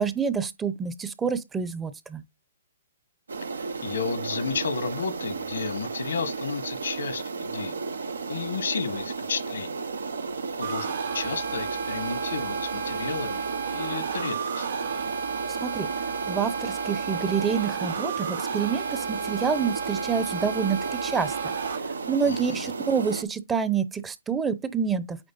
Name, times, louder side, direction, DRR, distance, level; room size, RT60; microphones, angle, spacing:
voice 1, 0.0-2.2 15.6-15.9 16.3-21.5 22.1-25.2, right 6 dB, 15° right, 0.7 m, -27 dB
sound 1, 3.3-23.2, right 4 dB, 90° right, 0.9 m, -33 dB
voice 2, 3.6-9.8 10.6-14.7 22.2-22.7, left 5 dB, 80° left, 1.3 m, -33 dB
sound 2, 10.6-21.8, right 6 dB, 70° right, 3.5 m, -33 dB
8.8 x 3.4 x 3.9 m
hypercardioid pair, 135°, 0 cm